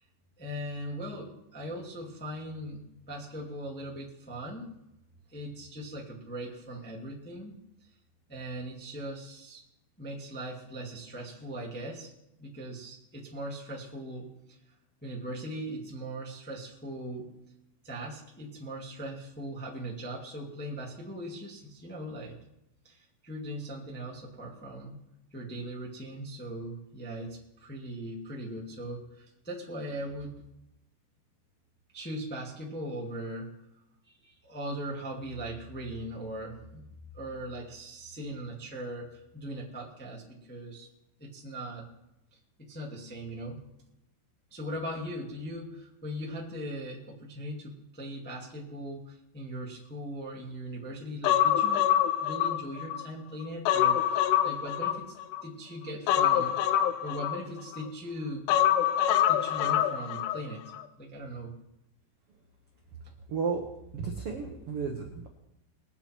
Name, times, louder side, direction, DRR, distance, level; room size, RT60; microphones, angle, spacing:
voice 1, 0.4-4.7 5.3-7.5 8.3-9.6 10.0-12.1 12.4-14.3 15.0-17.3 17.8-22.3 22.8-25.0 25.3-30.3 31.9-33.5 34.1-36.9 37.1-40.9 41.2-41.9 42.6-43.6 44.5-51.9 52.2-55.2 55.4-56.6 57.0-58.5 59.3-60.6 61.0-61.6, right 1 dB, 5° left, -2 dB, 0.8 m, -39 dB
Human voice, 51.2-53.0 53.4-55.4 56.1-57.8 58.5-60.4 60.7-60.8, left 11 dB, 90° left, 2.8 m, -25 dB
voice 2, 63.3-63.6 63.9-65.3, right 5 dB, 75° right, 2 dB, 1.3 m, -33 dB
21.5 x 8.3 x 4.5 m, 0.85 s
omnidirectional pair, 4.7 m